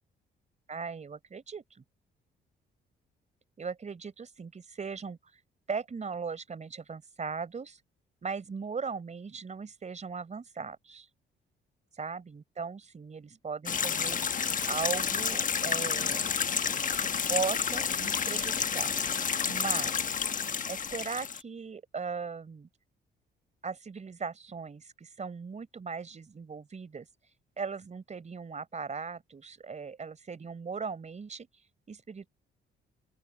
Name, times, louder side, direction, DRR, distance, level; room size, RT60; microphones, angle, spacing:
voice 1, 0.7-1.8 3.6-5.4 5.7-7.8 8.2-11.1 11.9-14.2 14.7-16.4 17.3-18.9 19.4-20.1 20.7-22.7 23.6-32.3, right 5 dB, 35° right, 4.2 m, -38 dB
sound 1, 13.7-21.4, left 6 dB, 40° left, 1.3 m, -30 dB
open air
cardioid pair, 90°, 20 cm